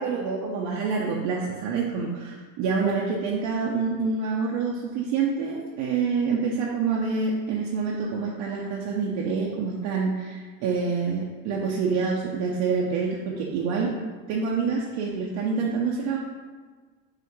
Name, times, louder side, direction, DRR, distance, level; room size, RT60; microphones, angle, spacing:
voice 1, 0.0-13.9 14.3-16.2, right 5 dB, 60° right, -2 dB, 0.7 m, -27 dB
5.7 x 2.5 x 3.0 m, 1.5 s
supercardioid pair, 105°, 44 cm